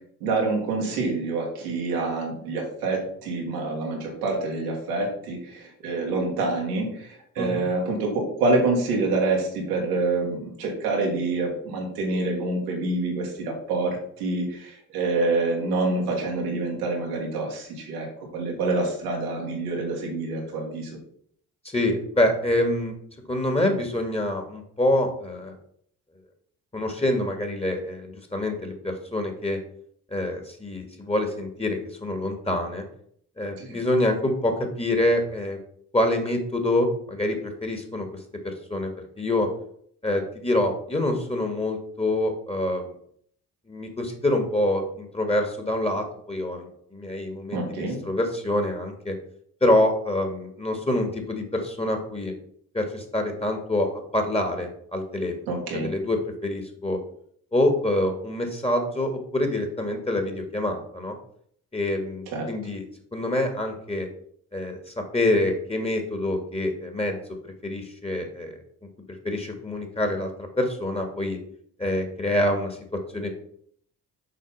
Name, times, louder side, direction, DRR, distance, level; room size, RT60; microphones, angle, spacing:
voice 1, 0.2-18.1 18.3-20.9 33.6-33.8 47.5-48.0 55.5-55.9 62.3-62.5, right 3 dB, 85° right, -1 dB, 1.7 m, -27 dB
voice 2, 21.7-23.0 23.3-25.5 26.7-29.6 30.1-32.8 33.4-35.6 35.9-38.1 38.4-39.5 40.0-42.9 43.7-49.1 49.6-52.3 52.7-57.0 57.5-61.2 61.7-62.8 63.1-64.1 64.5-67.2 67.4-68.6 69.2-71.4 71.8-73.3, left 1 dB, 15° left, 4 dB, 1.7 m, -26 dB
6.7 x 5.1 x 4.1 m, 0.64 s
figure-of-eight pair, 40°, 45 cm